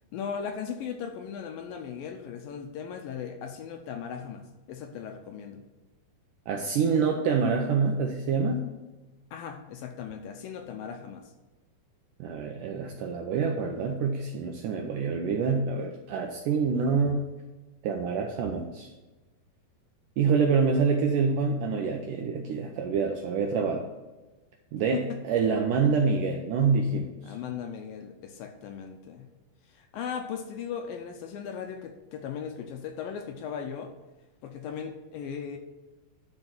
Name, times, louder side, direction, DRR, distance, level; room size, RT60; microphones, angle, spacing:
voice 1, 0.1-5.6 9.3-11.3 24.9-25.2 27.2-29.3 29.7-33.9 34.4-35.6, left 7 dB, 80° left, 5 dB, 2.2 m, -37 dB
voice 2, 6.5-8.6 12.2-17.2 17.8-18.9 20.2-23.8 24.7-27.1, right 5 dB, 80° right, 2 dB, 1.9 m, -26 dB
11.0 x 4.5 x 6.0 m, 1.1 s
omnidirectional pair, 4.6 m